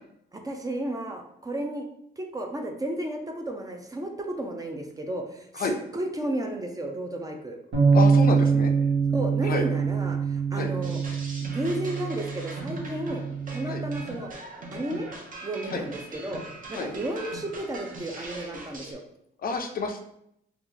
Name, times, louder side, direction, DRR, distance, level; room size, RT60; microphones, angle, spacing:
voice 1, 0.3-1.9 2.2-7.6 9.1-11.0 11.4-13.2 13.5-14.3 14.7-15.1 15.4-16.4 16.7-19.0, right 1 dB, 20° right, 3 dB, 0.5 m, -33 dB
sound 1, 7.7-14.0, right 5 dB, 90° right, 1.4 m, -24 dB
voice 2, 7.9-8.7 9.4-9.6 10.5-10.7 13.7-13.8 15.7-15.8 16.7-16.9 19.4-20.0, left 4 dB, 45° left, 5 dB, 0.5 m, -29 dB
sound 2, 10.8-18.9, right 2 dB, 45° right, 0.8 m, -41 dB
2.9 x 2.4 x 3.7 m, 0.75 s
cardioid pair, 90°, 20 cm